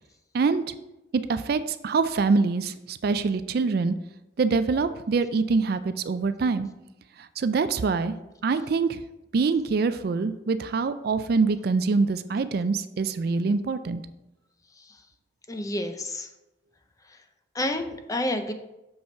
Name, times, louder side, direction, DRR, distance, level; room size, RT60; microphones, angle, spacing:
voice 1, 1.1-3.9 4.4-6.7 7.4-8.1 8.4-9.0 9.3-14.0, right 4 dB, 55° right, 12 dB, 0.4 m, -24 dB
voice 2, 15.5-16.3 17.6-18.5, left 1 dB, 20° left, 7 dB, 0.6 m, -29 dB
6.8 x 5.5 x 4.4 m, 0.95 s
head